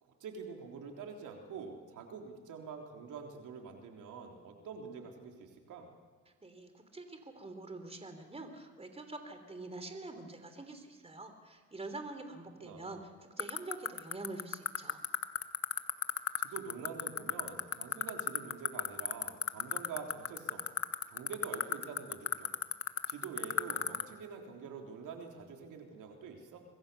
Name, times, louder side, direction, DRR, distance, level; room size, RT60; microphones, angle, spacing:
voice 1, 0.0-5.9 12.6-13.1 16.4-20.7 21.1-22.5 23.1-26.6, right 5 dB, 85° right, 2 dB, 3.5 m, -46 dB
voice 2, 6.4-15.0, right 2 dB, 20° right, 7 dB, 3.6 m, -46 dB
sound 1, 13.4-24.0, left 8 dB, 50° left, 1.5 m, -30 dB
25.5 x 21.5 x 7.0 m, 1.5 s
cardioid pair, 90°, 30 cm